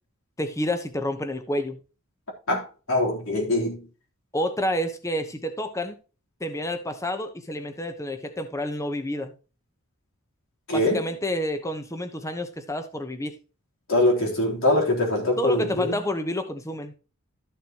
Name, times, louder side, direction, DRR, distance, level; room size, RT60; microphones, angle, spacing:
voice 1, 0.4-1.8 4.3-6.0 6.4-9.3 10.7-13.4 15.4-16.9, left 1 dB, 15° left, 1.0 m, -29 dB
voice 2, 2.5-3.9 10.7-11.1 13.9-16.0, left 1 dB, 70° left, 3.6 m, -23 dB
13.0 x 6.7 x 3.0 m
head